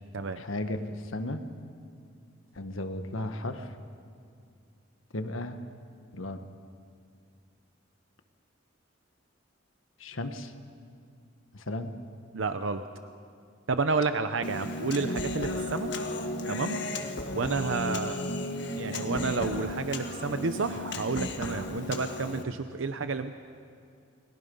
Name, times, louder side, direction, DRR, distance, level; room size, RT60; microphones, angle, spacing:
voice 1, 0.3-1.4 2.5-3.7 5.1-5.6 6.1-6.4 10.0-10.5 11.5-11.9, left 1 dB, 85° left, 7 dB, 1.5 m, -35 dB
voice 2, 12.3-12.9 13.7-15.9 16.5-18.4 18.8-23.3, right 4 dB, 75° right, 9 dB, 0.7 m, -31 dB
Human voice, 14.4-22.4, left 1 dB, 60° left, 1.7 m, -34 dB
30.0 x 21.5 x 5.5 m, 2.3 s
head